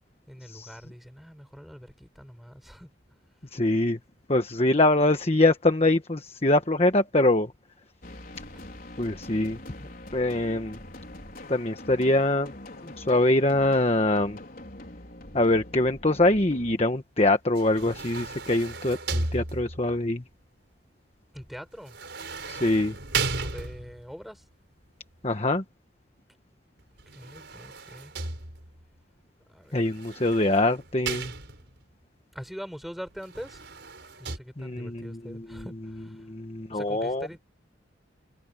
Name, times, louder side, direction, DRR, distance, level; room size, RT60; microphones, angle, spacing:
voice 1, 0.3-2.9 8.5-8.6 21.3-22.0 23.3-24.4 27.1-28.1 29.5-29.8 32.3-33.7 34.2-36.3 36.7-37.4, equal, ahead, 7.6 m, -43 dB
voice 2, 3.5-4.0 4.3-7.5 9.0-9.6 10.1-10.8 11.5-12.5 12.8-14.4 15.3-20.2 22.5-22.9 25.2-25.6 29.7-31.3 34.6-35.6 36.2-37.3, left 2 dB, 30° left, 1.3 m, -24 dB
sound 1, 8.0-16.8, left 1 dB, 50° left, 5.1 m, -44 dB
sound 2, 17.5-20.0 21.9-24.1 27.0-28.8 29.8-31.8 33.2-34.4, right 3 dB, 60° right, 6.2 m, -35 dB
head